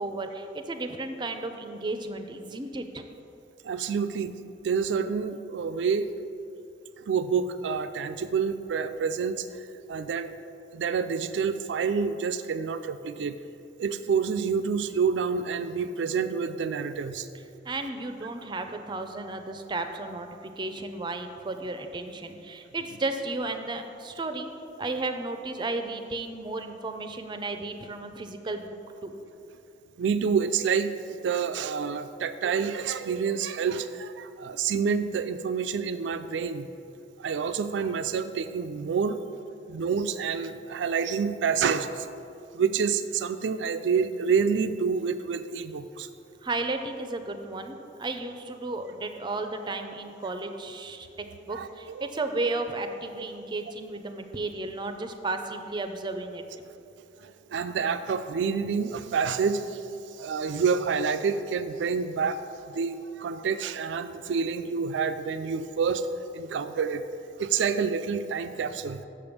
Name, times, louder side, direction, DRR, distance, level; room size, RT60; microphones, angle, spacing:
voice 1, 0.0-3.0 17.6-24.5 24.8-28.8 29.0-29.1 46.4-56.4, right 2 dB, 25° right, 7 dB, 0.4 m, -33 dB
voice 2, 3.6-4.3 4.6-6.1 7.0-10.3 10.7-13.4 13.8-17.3 30.0-36.7 37.2-39.2 39.7-42.1 42.5-46.1 51.5-52.1 53.2-53.3 57.2-59.9 60.2-62.4 62.7-66.1 66.3-67.0 67.4-69.1, right 6 dB, 90° right, 10 dB, 0.4 m, -28 dB
6.6 x 5.2 x 7.0 m, 2.7 s
head